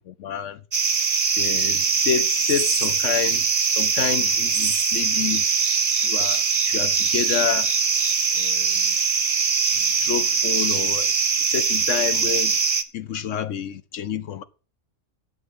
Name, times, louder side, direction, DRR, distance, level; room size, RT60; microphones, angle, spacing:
voice 1, 0.1-0.6 1.4-3.5 3.8-5.4 5.9-7.7 8.3-9.0 9.7-11.1 11.5-12.6 12.9-14.4, left 9 dB, 65° left, 1.0 m, -28 dB
sound 1, 0.7-12.8, right 5 dB, 35° right, 0.6 m, -22 dB
8.1 x 7.9 x 7.1 m
omnidirectional pair, 1.5 m